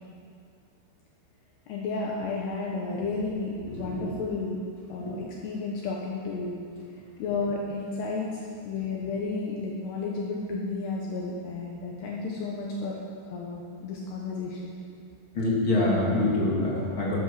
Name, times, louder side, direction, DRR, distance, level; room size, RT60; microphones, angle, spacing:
voice 1, 1.7-4.6 4.9-6.6 7.2-13.0 13.3-14.7, left 3 dB, 70° left, -3 dB, 2.9 m, -32 dB
voice 2, 3.6-4.1 5.0-5.1 15.3-17.2, left 2 dB, 40° left, -5 dB, 2.0 m, -26 dB
13.5 x 11.5 x 5.9 m, 2.3 s
omnidirectional pair, 5.6 m